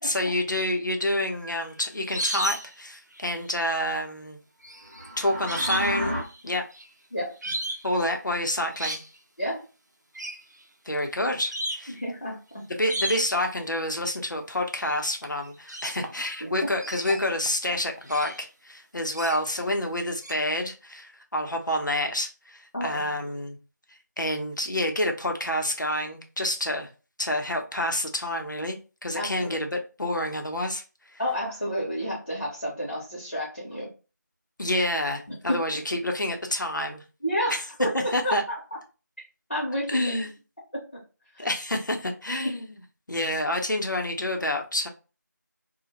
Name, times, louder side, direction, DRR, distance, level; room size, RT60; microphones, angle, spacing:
voice 1, 0.0-4.4 5.2-6.1 6.4-6.7 7.8-9.0 10.9-12.0 12.7-23.6 24.2-26.9 27.2-30.8 31.1-31.2 34.6-37.0 37.5-37.6 37.9-38.4 39.9-40.3 41.4-42.8 43.1-44.9, left 1 dB, 85° left, 3 dB, 0.6 m, -28 dB
sound 1, 1.3-2.8 3.1-3.7 4.6-6.0 6.2-6.9 7.4-7.9 8.5-9.1 10.2-10.4 11.0-11.1 11.5-11.9 12.9-13.4 14.8-15.0 15.2-16.4 16.8-18.4 19.1-19.6 20.2-20.3, right 1 dB, 70° right, 0.5 m, -33 dB
sound 2, 4.8-6.2, equal, 25° right, 0.6 m, -31 dB
voice 2, 7.1-7.5 9.4-9.6 11.9-12.6 16.4-16.5 22.7-23.1 29.2-29.6 31.2-33.9 35.5-35.6 37.2-37.5 37.8-37.9 38.2-38.6 39.5-40.1 40.7-41.0 41.3-41.5, equal, 45° left, -5 dB, 0.7 m, -30 dB
2.1 x 2.0 x 2.8 m, 0.33 s
figure-of-eight pair, 175°, 10 cm